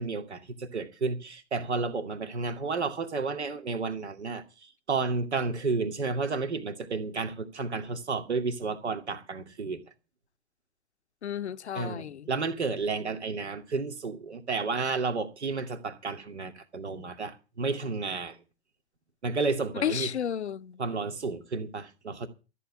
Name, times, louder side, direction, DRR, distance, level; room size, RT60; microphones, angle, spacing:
voice 1, 0.0-9.8 11.7-18.4 19.2-20.1 20.8-22.3, right 4 dB, 85° right, 2.5 m, -32 dB
voice 2, 11.2-12.3 19.8-20.8, left 9 dB, 85° left, 0.7 m, -32 dB
14.0 x 7.2 x 8.4 m
hypercardioid pair, 120°, 33 cm